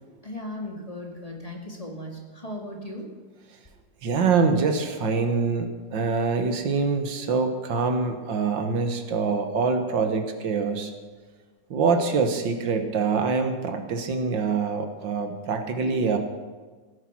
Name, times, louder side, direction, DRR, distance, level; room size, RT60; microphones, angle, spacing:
voice 1, 0.2-3.1, left 1 dB, 20° left, 0 dB, 2.1 m, -37 dB
voice 2, 4.0-10.9 11.7-16.2, right 4 dB, 85° right, 6 dB, 2.0 m, -25 dB
17.0 x 10.0 x 6.1 m, 1.4 s
omnidirectional pair, 2.0 m